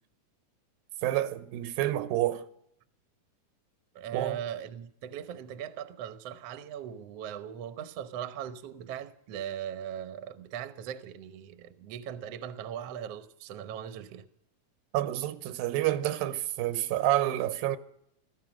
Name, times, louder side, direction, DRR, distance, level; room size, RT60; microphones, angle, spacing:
voice 1, 1.0-2.4 4.1-4.4 14.9-17.8, right 14 dB, 90° right, 2.6 m, -28 dB
voice 2, 3.9-14.2, right 9 dB, 70° right, 1.5 m, -39 dB
16.5 x 14.0 x 6.1 m
omnidirectional pair, 4.1 m